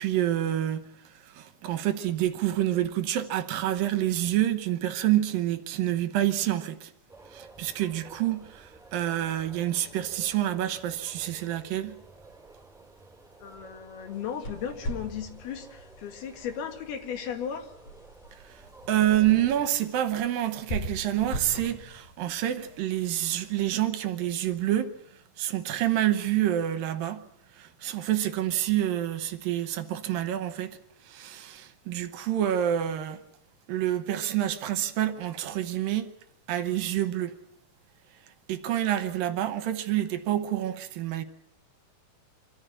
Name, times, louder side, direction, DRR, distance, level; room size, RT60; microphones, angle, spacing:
voice 1, 0.0-6.9 7.3-12.0 18.4-24.9 25.4-27.2 27.5-30.8 31.0-33.2 33.7-36.1 36.5-37.3 38.5-41.2, right 12 dB, 75° right, 2.6 m, -28 dB
sound 1, 7.1-19.7, right 3 dB, ahead, 3.7 m, -53 dB
voice 2, 13.4-17.7, left 8 dB, 90° left, 4.0 m, -36 dB
sound 2, 14.1-23.5, equal, 50° left, 4.4 m, -41 dB
26.0 x 14.0 x 8.8 m
omnidirectional pair, 4.4 m